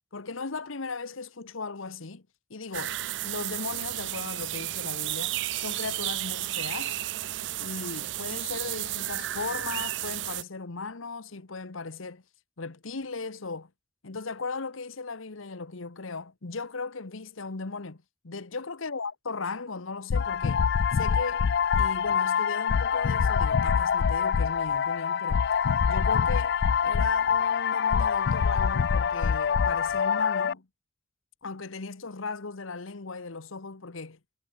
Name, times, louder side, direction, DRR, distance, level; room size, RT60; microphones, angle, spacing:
voice 1, 0.1-2.2 2.5-3.0 3.2-6.9 7.6-12.2 12.6-13.7 14.0-20.7 20.9-21.5 21.7-25.4 25.9-26.6 26.8-30.7 31.4-34.2, left 4 dB, 90° left, 1.2 m, -37 dB
sound 1, 2.7-10.4, right 15 dB, 65° right, 0.4 m, -33 dB
sound 2, 20.1-30.5, left 6 dB, 55° left, 0.3 m, -25 dB
head